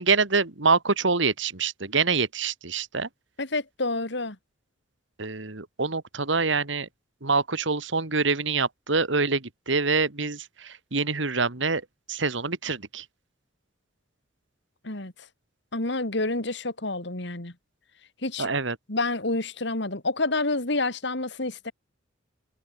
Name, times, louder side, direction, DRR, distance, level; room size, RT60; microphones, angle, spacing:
voice 1, 0.0-3.1 5.2-6.9 7.2-11.8 12.1-13.0 18.4-18.8, right 4 dB, 70° right, 2.0 m, -25 dB
voice 2, 3.4-4.4 14.8-15.1 15.7-17.5 18.2-18.5 18.9-21.7, left 2 dB, 65° left, 2.9 m, -28 dB
head